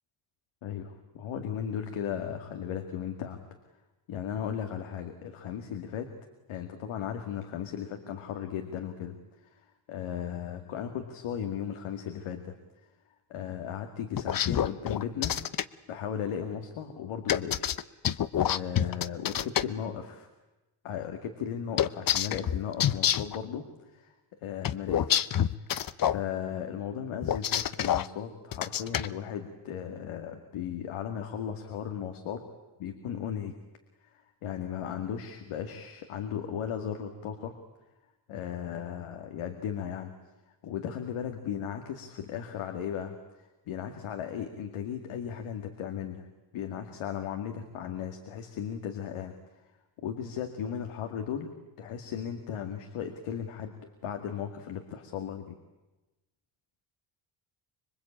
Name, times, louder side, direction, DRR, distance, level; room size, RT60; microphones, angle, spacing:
voice 1, 0.6-3.4 4.1-6.1 6.5-9.2 9.4-9.6 9.9-12.6 13.3-15.3 15.9-17.8 18.4-20.3 20.8-24.1 24.4-25.3 26.0-32.4 32.8-33.5 34.0-37.5 38.3-40.1 40.6-46.3 46.5-49.3 50.0-51.5 51.8-55.6, left 8 dB, 80° left, 5 dB, 2.2 m, -36 dB
sound 1, 14.2-15.6 17.3-19.6 21.8-23.4 24.6-26.2 27.2-28.1 28.5-29.1, left 10 dB, 45° left, 0.8 m, -27 dB
26.0 x 22.0 x 8.7 m, 1.1 s
cardioid pair, 100°, 49 cm